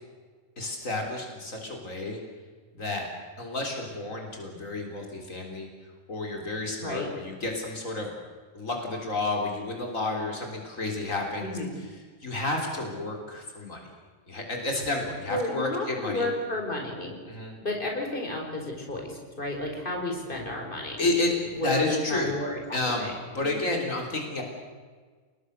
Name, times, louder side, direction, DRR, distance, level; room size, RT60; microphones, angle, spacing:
voice 1, 0.6-2.2 2.7-3.1 3.4-5.7 6.1-8.1 8.5-11.6 12.2-13.8 14.3-16.3 17.3-17.5 21.0-22.4 22.7-24.4, left 2 dB, 90° left, 2 dB, 4.2 m, -31 dB
voice 2, 11.4-11.8 15.3-17.2 17.6-21.0 21.5-23.1 23.4-23.5, left 1 dB, 40° left, 1 dB, 5.3 m, -32 dB
29.5 x 20.0 x 6.6 m, 1.5 s
omnidirectional pair, 1.3 m